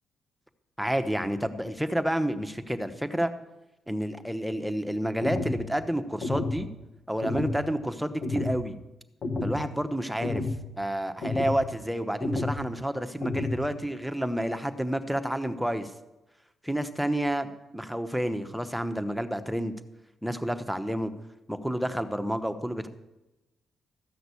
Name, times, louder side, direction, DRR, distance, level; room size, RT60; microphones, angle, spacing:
voice 1, 0.8-3.3 3.9-6.7 7.1-8.8 9.4-10.4 10.8-15.9 16.6-19.7 20.2-21.1 21.5-22.9, equal, ahead, 8 dB, 0.9 m, -29 dB
sound 1, 5.2-5.6 6.2-6.6 7.2-7.6 8.2-8.6 9.2-9.6 10.2-10.6 11.2-11.6 12.2-12.6 13.2-13.6, left 2 dB, 50° left, 1.6 m, -30 dB
14.0 x 6.0 x 8.3 m, 1.0 s
cardioid pair, 115°, 0 cm